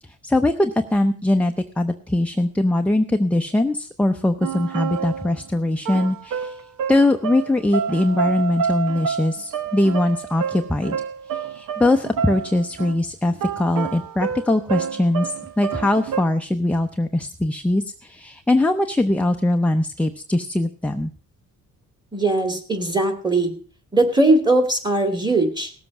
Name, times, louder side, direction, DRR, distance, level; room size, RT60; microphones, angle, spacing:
voice 1, 0.2-6.6 6.9-11.0 11.3-21.1, left 1 dB, 5° left, 5 dB, 0.6 m, -21 dB
sound 1, 4.4-5.5 5.9-13.0 13.3-16.2, right 7 dB, 80° right, 1.3 m, -28 dB
voice 2, 22.1-23.5 23.9-25.7, right 2 dB, 15° right, 7 dB, 2.6 m, -19 dB
18.0 x 7.6 x 5.9 m, 0.40 s
cardioid pair, 140°, 32 cm